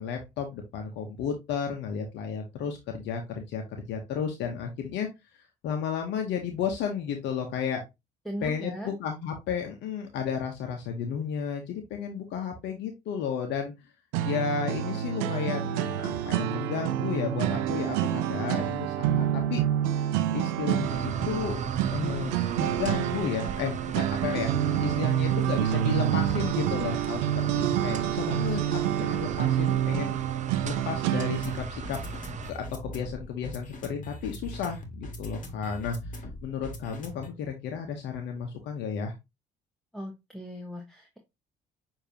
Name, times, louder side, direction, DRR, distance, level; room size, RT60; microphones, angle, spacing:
voice 1, 0.0-5.1 5.6-7.8 8.4-13.7 14.2-19.6 19.9-21.6 21.9-22.3 22.6-27.3 27.5-30.1 30.6-32.0 32.5-39.1, left 7 dB, 70° left, 3 dB, 0.9 m, -33 dB
voice 2, 8.2-8.9 39.9-41.2, equal, ahead, 3 dB, 1.1 m, -38 dB
sound 1, 14.1-31.6, right 11 dB, 85° right, 0.5 m, -28 dB
sound 2, 20.8-32.5, right 6 dB, 40° right, 0.6 m, -37 dB
sound 3, 31.3-37.3, left 1 dB, 45° left, 1.5 m, -41 dB
6.7 x 2.8 x 2.8 m, 0.21 s
hypercardioid pair, 60°, 19 cm